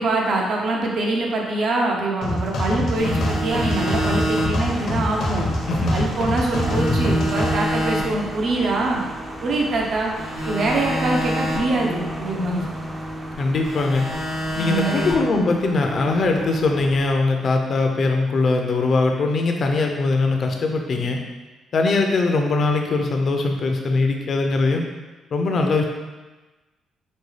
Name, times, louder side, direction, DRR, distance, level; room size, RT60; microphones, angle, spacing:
voice 1, 0.0-5.5 5.9-9.0 9.4-10.1 10.4-12.6 14.5-15.0, right 2 dB, 60° right, -1 dB, 0.7 m, -24 dB
sound 1, 2.2-7.5, left 1 dB, 70° left, 0.8 m, -24 dB
sound 2, 3.0-6.2 6.5-9.8 10.2-13.3 13.6-16.9, equal, 85° right, 1.4 m, -29 dB
sound 3, 4.7-17.2, right 1 dB, 20° right, 0.5 m, -38 dB
voice 2, 5.7-6.1 13.4-14.1 14.6-21.2 21.7-24.8 25.3-25.8, left 3 dB, 50° left, 3 dB, 0.5 m, -21 dB
5.2 x 2.2 x 3.2 m, 1.2 s
cardioid pair, 90°, 0 cm